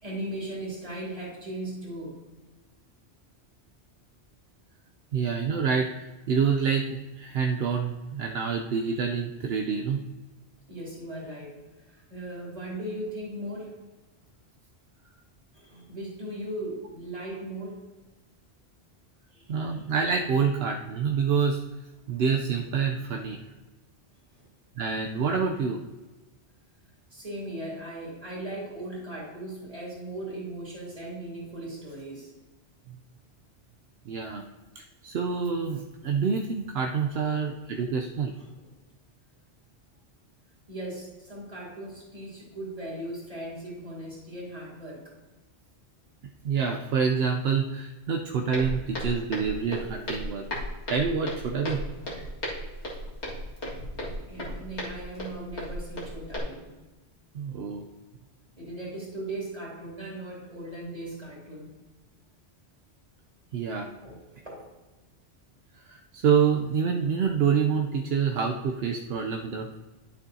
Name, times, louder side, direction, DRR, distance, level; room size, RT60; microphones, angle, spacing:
voice 1, 0.0-2.2 10.7-11.6 11.8-13.8 15.5-17.8 19.3-19.9 23.2-23.4 24.3-24.5 27.1-32.3 37.2-37.4 38.4-38.7 40.7-45.1 54.1-56.8 58.6-61.7 64.0-64.7, right 1 dB, 35° right, -6 dB, 3.0 m, -38 dB
voice 2, 5.1-10.1 19.5-21.6 22.1-23.4 24.8-25.8 32.9-33.0 34.1-34.4 35.0-38.3 46.4-50.4 50.9-51.8 54.5-54.6 57.3-57.8 63.5-63.9 65.8-69.8, right 6 dB, 70° right, 3 dB, 0.9 m, -27 dB
Walk footsteps, 48.5-56.4, equal, 80° left, 2.3 m, -35 dB
11.5 x 6.9 x 2.7 m, 1.2 s
omnidirectional pair, 1.1 m